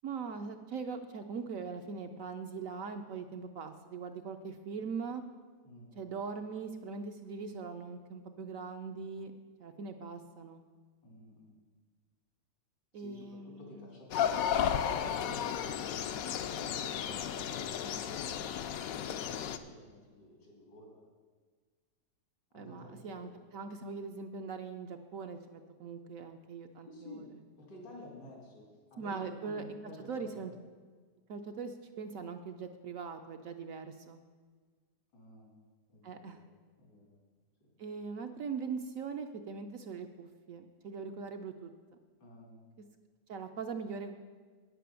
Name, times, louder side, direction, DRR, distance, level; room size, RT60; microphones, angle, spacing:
voice 1, 0.0-5.2 6.0-9.3 9.6-10.6 12.9-13.8 22.5-27.3 29.0-29.8 30.1-30.5 31.3-34.2 36.0-36.4 37.8-41.7 43.3-44.2, right 5 dB, 65° right, 6 dB, 0.9 m, -41 dB
voice 2, 11.0-11.5 12.9-15.7 16.3-18.5 18.9-21.0 22.5-23.3 23.6-23.9 26.8-27.3 27.6-30.5 35.1-35.6 35.9-36.4 36.7-37.2 42.2-42.6, left 1 dB, 90° left, -2 dB, 3.8 m, -53 dB
sound 1, 14.1-19.6, left 9 dB, 70° left, 0.9 m, -33 dB
9.5 x 7.6 x 6.9 m, 1.5 s
omnidirectional pair, 1.8 m